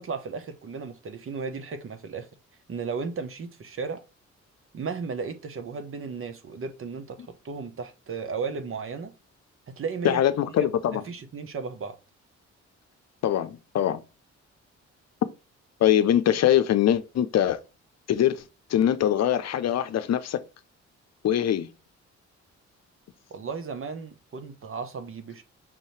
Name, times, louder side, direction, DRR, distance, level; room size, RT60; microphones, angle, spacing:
voice 1, 0.0-2.3 2.7-4.0 4.7-9.1 9.7-10.2 10.6-12.0 23.3-25.4, right 5 dB, 45° right, 0.9 m, -35 dB
voice 2, 10.0-11.0 13.2-14.0 15.8-17.6 18.1-18.4 18.7-20.4 21.2-21.7, left 10 dB, 60° left, 0.6 m, -23 dB
5.7 x 2.7 x 3.2 m
cardioid pair, 90°, 29 cm